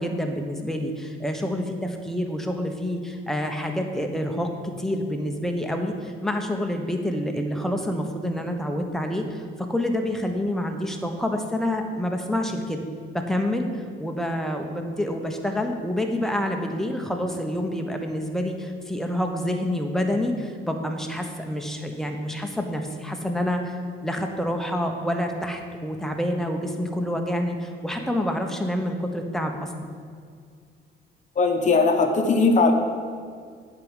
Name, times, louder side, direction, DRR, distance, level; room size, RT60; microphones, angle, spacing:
voice 1, 0.0-9.4 9.7-12.8 13.1-23.8 24.0-29.9, left 1 dB, ahead, 3 dB, 1.1 m, -27 dB
voice 2, 31.4-32.7, left 4 dB, 40° left, 3 dB, 1.0 m, -19 dB
8.7 x 4.8 x 7.3 m, 2.1 s
cardioid pair, 90°, 20 cm